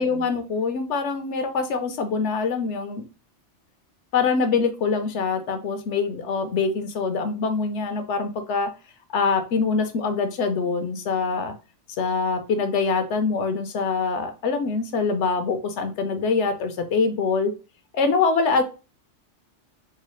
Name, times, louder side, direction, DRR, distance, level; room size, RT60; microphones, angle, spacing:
voice 1, 0.0-3.0 4.1-8.7 9.1-11.5 12.0-17.5 17.9-18.6, left 4 dB, 75° left, 8 dB, 1.0 m, -24 dB
3.8 x 2.3 x 3.1 m, 0.31 s
omnidirectional pair, 1.2 m